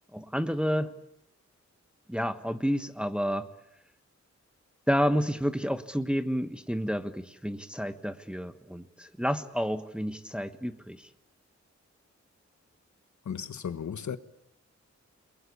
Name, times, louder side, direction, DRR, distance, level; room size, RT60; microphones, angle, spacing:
voice 1, 0.1-0.9 2.1-3.5 4.9-11.1, equal, 5° right, 1.3 m, -30 dB
voice 2, 13.2-14.2, left 7 dB, 80° left, 1.4 m, -35 dB
29.5 x 22.5 x 8.5 m
wide cardioid pair, 115°, 29 cm